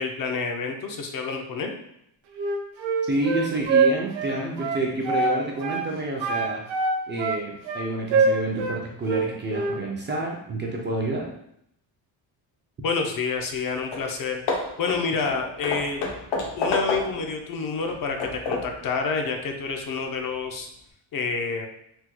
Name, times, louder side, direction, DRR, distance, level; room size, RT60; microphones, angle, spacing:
voice 1, 0.0-1.7 12.8-14.4 14.8-16.0 16.6-20.7 21.1-21.7, left 5 dB, 50° left, 4 dB, 0.5 m, -28 dB
Wind instrument woodwind instrument, 2.4-5.4 5.6-5.9 6.2-8.8 9.1-9.8, right 4 dB, 75° right, 0.7 m, -24 dB
voice 2, 3.1-6.6 7.1-11.3, right 2 dB, 25° right, -2 dB, 0.3 m, -28 dB
Hammer / Wood, 13.5-13.6 13.9-14.1 14.5-17.3 17.8-18.8, left 3 dB, 70° left, 0.8 m, -29 dB
3.5 x 2.2 x 2.9 m, 0.74 s
cardioid pair, 135°, 46 cm